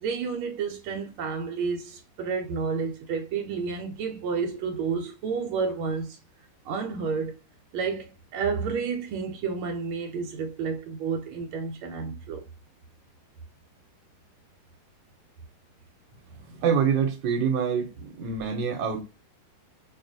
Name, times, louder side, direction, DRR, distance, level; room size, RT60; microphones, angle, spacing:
voice 1, 0.0-6.2 6.6-7.4 7.7-12.4, right 5 dB, 85° right, 1.5 m, -30 dB
voice 2, 16.4-19.0, right 7 dB, 65° right, 1.5 m, -26 dB
4.7 x 2.3 x 2.6 m
omnidirectional pair, 2.3 m